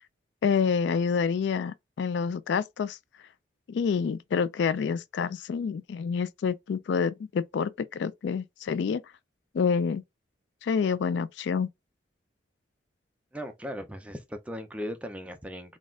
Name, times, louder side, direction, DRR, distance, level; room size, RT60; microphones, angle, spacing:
voice 1, 0.4-3.0 3.7-9.0 9.5-10.0 10.6-11.7, left 6 dB, 70° left, 0.3 m, -27 dB
voice 2, 13.3-15.8, equal, 5° right, 0.5 m, -38 dB
4.0 x 2.4 x 3.6 m
head